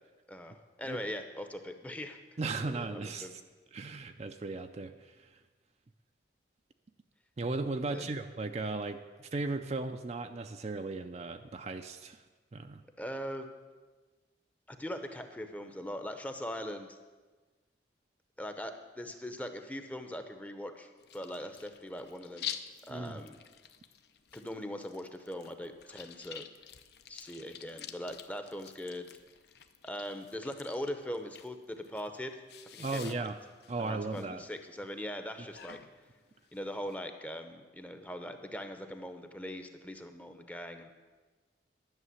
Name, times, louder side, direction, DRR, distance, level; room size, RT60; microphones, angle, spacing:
voice 1, 0.3-3.3 7.9-8.2 13.0-13.4 14.7-17.0 18.4-22.5 22.9-23.4 24.3-26.4 27.1-29.1 29.8-32.4 32.7-33.3 33.8-35.8 36.5-40.9, equal, 10° left, 7 dB, 0.7 m, -41 dB
voice 2, 2.4-3.3 3.7-5.3 7.4-12.2 12.5-12.8 22.9-23.2 32.8-33.4 33.7-34.4, right 3 dB, 35° right, 7 dB, 0.4 m, -36 dB
sound 1, 21.0-36.9, left 9 dB, 60° left, 0.6 m, -49 dB
11.0 x 6.6 x 9.5 m, 1.3 s
head